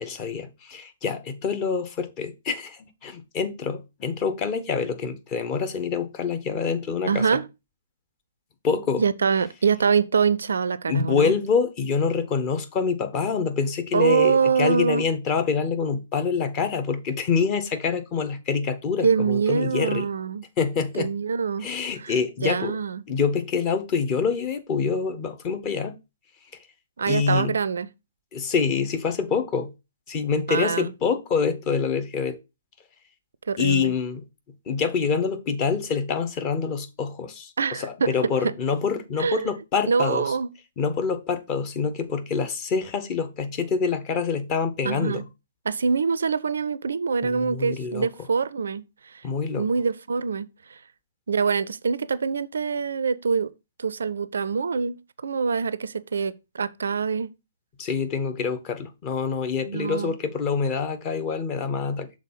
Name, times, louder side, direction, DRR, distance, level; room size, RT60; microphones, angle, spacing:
voice 1, 0.0-7.4 8.6-9.0 10.9-20.1 20.6-21.1 21.6-22.8 23.1-25.9 27.1-27.6 28.3-29.7 30.1-32.4 33.6-34.2 34.7-40.4 40.8-45.2 47.2-48.1 49.2-49.7 57.8-62.1, left 5 dB, 25° left, 0.9 m, -26 dB
voice 2, 7.1-7.4 9.0-11.3 13.9-15.0 19.0-20.4 21.0-21.7 22.0-22.1 22.4-23.0 27.0-27.9 30.5-30.9 33.5-33.9 37.6-38.1 39.2-39.5 39.9-40.5 44.8-45.2 45.7-48.8 49.1-49.2 49.6-50.8 51.3-53.5 53.8-55.0 55.2-57.3 59.7-60.1, right 5 dB, 60° right, 0.4 m, -24 dB
6.4 x 3.5 x 5.6 m
figure-of-eight pair, 125°, 0 cm